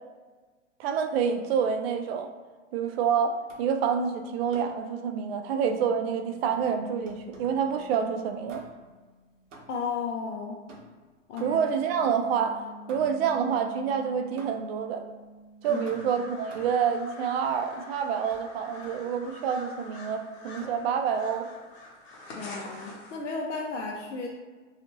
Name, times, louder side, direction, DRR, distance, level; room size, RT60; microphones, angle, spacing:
voice 1, 0.8-2.3 2.7-8.6 11.4-12.6 12.9-15.0 15.6-21.5, right 7 dB, 55° right, 5 dB, 0.5 m, -27 dB
sound 1, 3.5-3.8 4.5-4.9 6.5-7.6 8.5-9.0 9.5-10.0 10.7-11.8 12.9-13.4 14.4-14.8 15.9-16.9 18.3-18.5 18.8-19.5 20.6-20.9, right 2 dB, 90° right, 0.7 m, -51 dB
sound 2, 5.7-9.5 11.8-16.1 18.1-21.9, equal, 5° right, 0.5 m, -51 dB
voice 2, 9.7-10.6 11.3-11.6 15.7-16.1 22.4-24.3, left 4 dB, 75° left, 0 dB, 0.6 m, -34 dB
sound 3, 15.6-23.2, left 2 dB, 55° left, 1.0 m, -46 dB
2.5 x 2.4 x 3.0 m, 1.4 s
hypercardioid pair, 105°, 36 cm